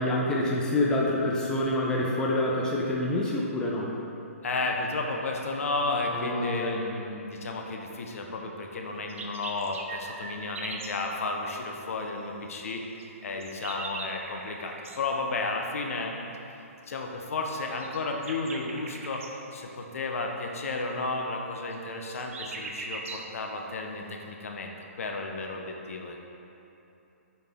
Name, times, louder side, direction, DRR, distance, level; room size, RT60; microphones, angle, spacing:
voice 1, 0.0-3.9 6.1-6.8, left 1 dB, 10° left, -4 dB, 0.5 m, -27 dB
voice 2, 4.4-16.2 16.9-19.2 19.5-24.7 25.0-26.2, left 3 dB, 65° left, 1 dB, 0.8 m, -33 dB
sound 1, 8.9-11.0 13.0-15.0 17.7-19.3 21.7-23.3, right 3 dB, 60° right, 0.7 m, -40 dB
6.6 x 4.1 x 3.6 m, 2.9 s
hypercardioid pair, 145°, 8 cm